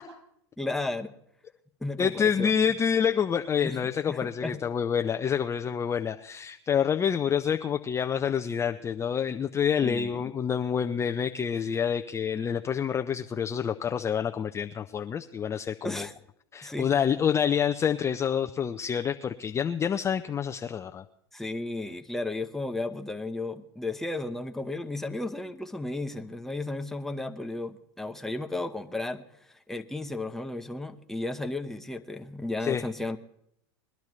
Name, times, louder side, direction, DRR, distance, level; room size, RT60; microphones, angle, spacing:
voice 1, 0.6-1.1 1.8-2.5 3.6-4.6 9.8-10.2 15.8-16.1 16.6-16.9 21.3-29.2 29.7-33.2, left 2 dB, 5° left, 5 dB, 0.8 m, -34 dB
voice 2, 2.0-16.1 16.5-21.0 32.6-32.8, left 7 dB, 20° left, 6 dB, 0.5 m, -27 dB
21.0 x 11.5 x 3.1 m, 0.72 s
hypercardioid pair, 100°, 14 cm